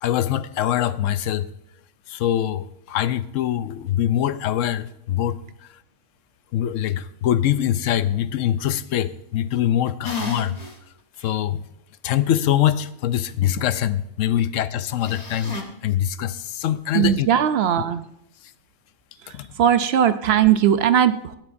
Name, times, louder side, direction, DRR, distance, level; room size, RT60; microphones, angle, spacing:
voice 1, 0.0-1.5 2.1-5.4 6.5-10.6 11.2-11.6 12.0-15.6 15.8-17.3 19.3-19.5, left 11 dB, 90° left, 1.0 m, -23 dB
sound 1, 10.0-10.8 11.2-11.3 15.0-15.6, left 3 dB, 35° left, 1.4 m, -31 dB
voice 2, 16.9-18.0 19.2-21.4, right 9 dB, 65° right, 0.8 m, -19 dB
16.5 x 12.0 x 2.6 m
omnidirectional pair, 1.3 m